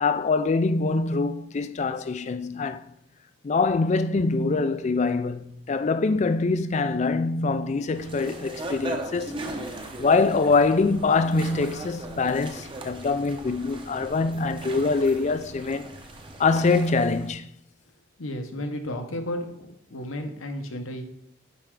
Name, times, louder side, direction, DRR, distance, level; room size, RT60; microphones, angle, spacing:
voice 1, 0.0-2.9 3.4-9.3 10.0-15.9 16.4-17.5, left 3 dB, 35° left, 0.3 m, -24 dB
sound 1, 7.9-17.3, right 1 dB, 25° right, 0.8 m, -38 dB
voice 2, 18.2-21.1, left 1 dB, 80° left, 1.0 m, -33 dB
9.7 x 4.4 x 3.7 m
head